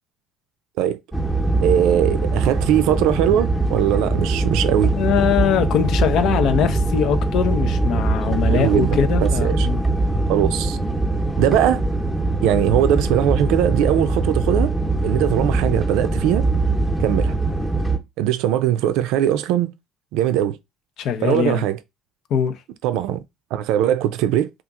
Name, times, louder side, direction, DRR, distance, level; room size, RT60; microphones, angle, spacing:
sound 1, 1.1-18.0, right 2 dB, 5° left, 0.8 m, -22 dB
voice 1, 1.6-4.9 8.5-9.7 10.3-10.8 11.4-11.8 12.4-14.7 15.0-16.5 17.0-17.3 18.2-19.7 20.1-20.6 21.2-21.8 22.8-23.2 23.5-24.5, right 11 dB, 80° right, 0.4 m, -20 dB
voice 2, 4.9-9.8 21.0-21.6 22.3-22.5, left 8 dB, 65° left, 0.6 m, -21 dB
2.9 x 2.4 x 3.6 m
supercardioid pair, 85°, 0 cm